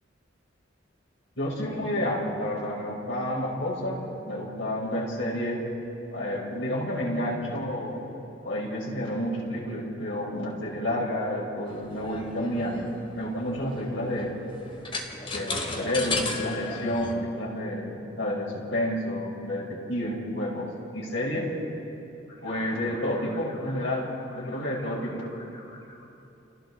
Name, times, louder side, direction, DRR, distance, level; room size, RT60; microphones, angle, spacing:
voice 1, 1.4-4.0 4.3-5.6 6.1-8.1 8.4-12.9 13.1-14.4 15.3-21.5 22.4-26.0, left 1 dB, 90° left, -4 dB, 6.5 m, -30 dB
sound 1, 11.7-17.1, left 3 dB, 30° left, 2.3 m, -35 dB
30.0 x 29.0 x 3.9 m, 2.9 s
head